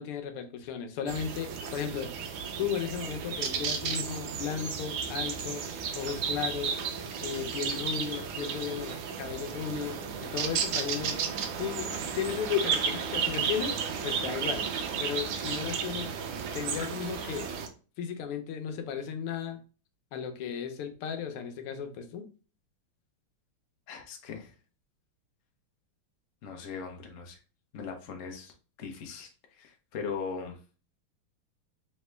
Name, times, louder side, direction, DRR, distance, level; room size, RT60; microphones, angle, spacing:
voice 1, 0.0-2.1 2.6-5.6 6.0-6.7 7.2-10.0 10.2-11.2 11.6-13.8 14.0-14.6 15.0-16.1 16.5-17.5 18.0-19.6 20.1-22.2, left 8 dB, 85° left, 7 dB, 1.6 m, -35 dB
sound 1, 1.1-17.7, right 6 dB, 70° right, 1.2 m, -33 dB
voice 2, 23.9-24.5 26.4-27.4 27.7-28.5 28.8-29.3 29.6-30.6, left 5 dB, 60° left, 3 dB, 0.8 m, -39 dB
3.6 x 3.2 x 3.2 m, 0.36 s
omnidirectional pair, 2.4 m